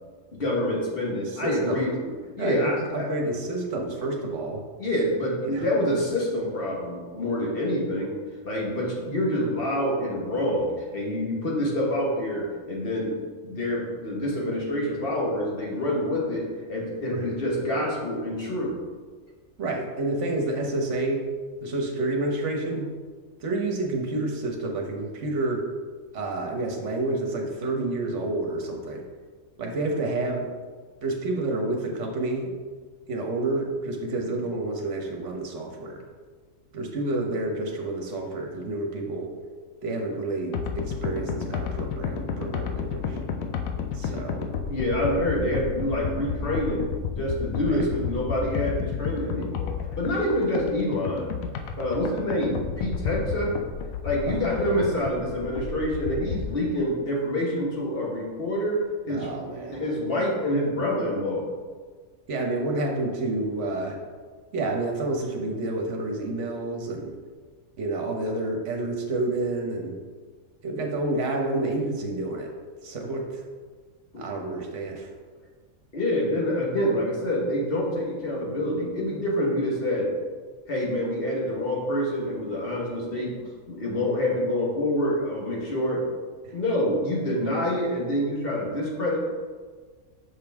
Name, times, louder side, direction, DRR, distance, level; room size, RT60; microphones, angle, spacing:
voice 1, 0.3-3.1 3.8-3.9 4.8-8.1 8.4-13.1 13.4-18.7 44.0-44.1 44.7-46.8 47.1-51.3 51.8-53.5 54.0-59.3 59.7-61.5 74.1-74.3 75.9-80.1 80.7-83.3 83.7-86.0 86.5-89.2, left 1 dB, 45° left, -3 dB, 1.5 m, -27 dB
voice 2, 1.3-1.8 2.4-4.6 5.4-5.6 17.1-17.2 19.6-21.2 21.6-22.9 23.4-25.6 26.1-29.0 29.6-30.5 31.0-32.5 33.1-36.0 36.7-39.3 39.8-43.2 43.9-44.5 47.6-47.9 54.3-54.4 59.1-59.9 62.3-64.0 64.5-67.1 67.8-70.0 70.6-72.5 72.8-73.4 74.2-75.1 86.4-86.5, right 2 dB, 60° right, 1 dB, 1.3 m, -29 dB
sound 1, 40.5-56.6, left 6 dB, 75° left, 1.0 m, -32 dB
6.4 x 5.2 x 3.5 m, 1.5 s
omnidirectional pair, 1.5 m